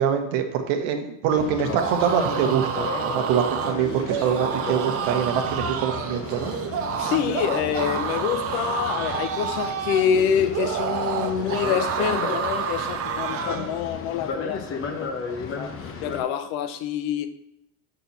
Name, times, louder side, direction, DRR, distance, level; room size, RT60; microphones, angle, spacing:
voice 1, 0.0-6.5, right 8 dB, 70° right, 6 dB, 1.1 m, -24 dB
Boat Water vehicle, 1.3-16.2, left 5 dB, 30° left, 0.9 m, -34 dB
sound 1, 1.6-13.7, right 7 dB, 35° right, 0.6 m, -29 dB
voice 2, 7.0-17.3, left 8 dB, 75° left, 11 dB, 0.8 m, -27 dB
6.2 x 4.1 x 5.8 m, 0.82 s
supercardioid pair, 135°, 42 cm